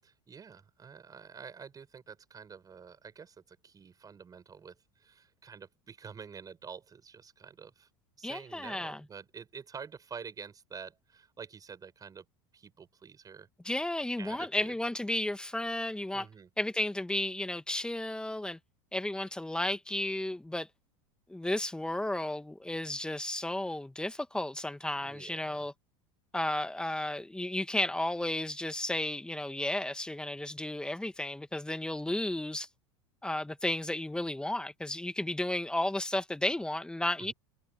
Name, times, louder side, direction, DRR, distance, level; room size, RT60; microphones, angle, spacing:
voice 1, 0.0-7.9 8.2-12.2 12.5-13.5 14.2-14.7 16.1-16.5 25.0-25.7 37.2-37.3, right 6 dB, 25° right, 7.7 m, -48 dB
voice 2, 8.2-9.0 13.6-16.3 16.6-18.6 18.9-20.7 21.3-25.7 26.3-32.7 33.2-37.3, left 1 dB, 5° left, 1.7 m, -33 dB
hypercardioid pair, 100°, 14 cm